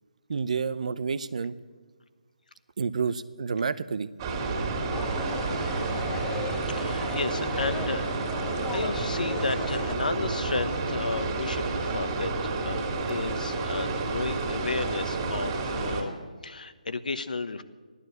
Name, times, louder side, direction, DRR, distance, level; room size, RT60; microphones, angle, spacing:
voice 1, 0.3-1.5 2.8-4.1, right 5 dB, 55° right, 15 dB, 0.7 m, -29 dB
sound 1, 4.2-16.0, right 3 dB, 25° right, 2.6 m, -30 dB
sound 2, 4.9-9.9, left 4 dB, 10° left, 0.7 m, -38 dB
voice 2, 6.7-8.0 8.7-16.2 16.4-17.6, left 3 dB, 75° left, 12 dB, 1.2 m, -33 dB
15.0 x 11.5 x 8.0 m, 1.4 s
hypercardioid pair, 160°, 4 cm